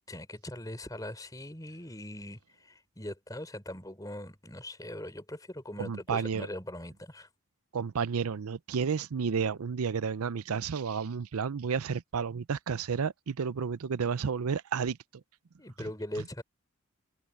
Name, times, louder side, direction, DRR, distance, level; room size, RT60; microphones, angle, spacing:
voice 1, 0.1-7.3 15.6-16.4, left 1 dB, 15° left, 3.8 m, -41 dB
voice 2, 5.8-6.5 7.7-15.0, right 6 dB, 85° right, 0.5 m, -31 dB
head